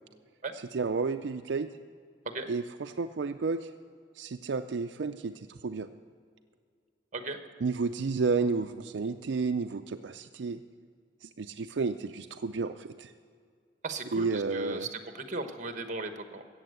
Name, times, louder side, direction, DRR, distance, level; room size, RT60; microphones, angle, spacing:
voice 1, 0.7-1.7 2.5-3.7 4.2-5.9 7.6-10.6 11.2-13.1 14.1-14.9, right 4 dB, 80° right, 7 dB, 0.5 m, -31 dB
voice 2, 13.8-16.4, right 3 dB, 45° right, 7 dB, 1.1 m, -37 dB
14.5 x 8.3 x 7.9 m, 2.1 s
head